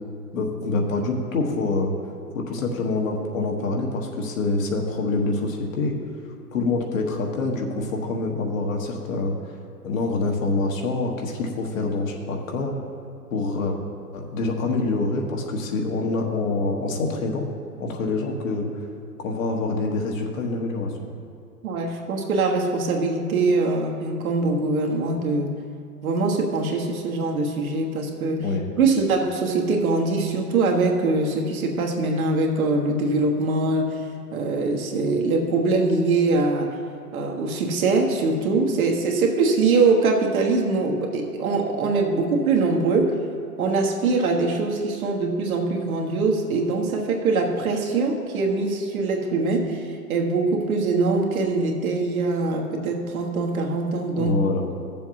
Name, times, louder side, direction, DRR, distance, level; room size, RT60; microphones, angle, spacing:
voice 1, 0.3-1.9 2.3-5.9 6.5-9.3 9.8-12.7 13.3-13.8 14.1-17.5 17.8-18.7 19.2-20.9 28.4-28.7 54.2-54.7, left 3 dB, 55° left, 1 dB, 1.5 m, -26 dB
voice 2, 21.6-25.5 26.0-28.4 28.8-34.0 34.3-36.8 37.1-43.2 43.6-54.4, right 3 dB, 60° right, 0 dB, 1.5 m, -23 dB
15.5 x 7.1 x 2.9 m, 2.6 s
figure-of-eight pair, 105°, 47 cm